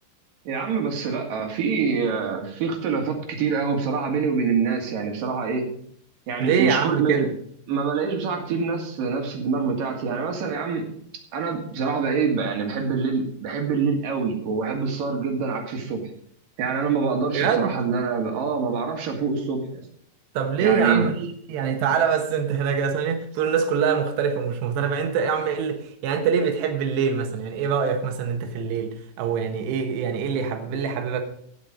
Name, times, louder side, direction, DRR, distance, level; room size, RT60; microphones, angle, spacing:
voice 1, 0.4-5.8 6.3-7.3 7.7-10.9 11.3-16.0 16.6-19.8 20.6-21.1, right 5 dB, 60° right, 3.1 m, -25 dB
voice 2, 6.4-7.3 17.3-17.7 20.3-31.2, right 6 dB, 75° right, 3.4 m, -24 dB
17.5 x 6.0 x 5.0 m
omnidirectional pair, 5.1 m